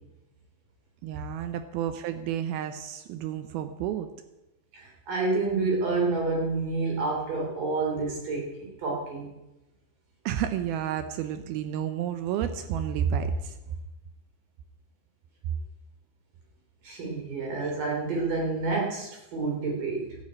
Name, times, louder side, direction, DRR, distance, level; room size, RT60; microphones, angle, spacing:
voice 1, 1.0-4.1 10.3-13.6, right 9 dB, 85° right, 9 dB, 2.1 m, -30 dB
voice 2, 4.7-9.3 16.8-20.2, right 3 dB, 50° right, -1 dB, 4.4 m, -29 dB
12.5 x 9.6 x 8.6 m, 0.97 s
omnidirectional pair, 5.3 m